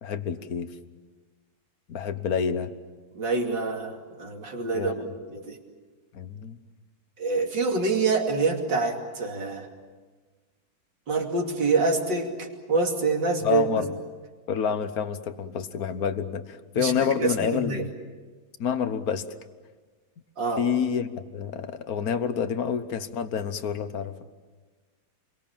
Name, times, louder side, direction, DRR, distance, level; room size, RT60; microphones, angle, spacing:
voice 1, 0.0-0.7 1.9-2.7 4.7-5.1 6.1-6.6 13.4-14.0 14.5-17.9 18.6-19.2 20.6-24.1, left 7 dB, 55° left, 11 dB, 1.5 m, -28 dB
voice 2, 3.1-5.6 7.2-9.7 11.1-13.7 16.7-17.8 20.4-20.7, right 4 dB, 65° right, 2 dB, 3.3 m, -26 dB
28.5 x 23.0 x 7.3 m, 1.4 s
omnidirectional pair, 2.1 m